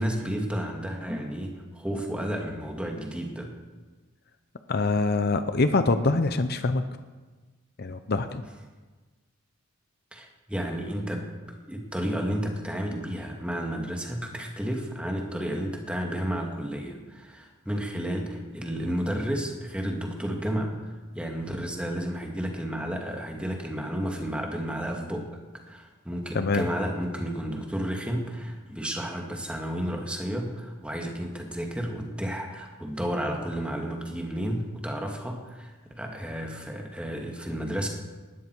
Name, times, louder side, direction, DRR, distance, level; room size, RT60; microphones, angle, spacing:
voice 1, 0.0-3.5 10.1-11.3 11.7-25.3 25.7-37.9, equal, 5° right, 2 dB, 1.9 m, -32 dB
voice 2, 4.7-6.8 7.8-8.4 26.3-26.7, left 3 dB, 50° left, 10 dB, 0.7 m, -24 dB
19.0 x 12.5 x 4.6 m, 1.3 s
head